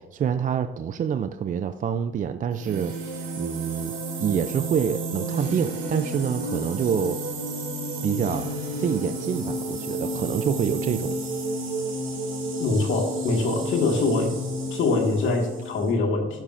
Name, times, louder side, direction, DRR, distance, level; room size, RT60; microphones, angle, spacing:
voice 1, 0.0-7.2 8.0-11.1, right 8 dB, 40° right, 10 dB, 0.4 m, -27 dB
sound 1, 2.5-15.9, right 1 dB, 80° right, 2.3 m, -31 dB
voice 2, 12.6-14.3 14.7-16.3, left 3 dB, 75° left, 1 dB, 1.8 m, -23 dB
12.0 x 5.6 x 2.5 m, 1.2 s
cardioid pair, 90°, 20 cm